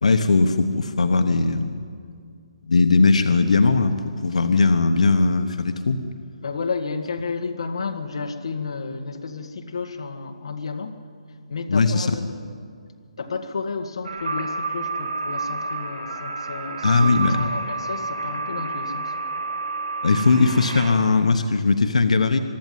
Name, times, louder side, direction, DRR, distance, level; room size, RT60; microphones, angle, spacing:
voice 1, 0.0-1.8 2.7-4.0 4.2-6.0 11.7-12.1 16.8-17.5 20.0-22.4, left 3 dB, 80° left, 7 dB, 1.2 m, -19 dB
voice 2, 6.4-11.0 11.5-12.7 13.2-16.9 17.3-19.1, left 4 dB, 55° left, 5 dB, 1.7 m, -32 dB
sound 1, 14.0-20.9, right 3 dB, 85° right, 5.7 m, -29 dB
24.0 x 12.5 x 9.3 m, 2.2 s
hypercardioid pair, 175°, 4 cm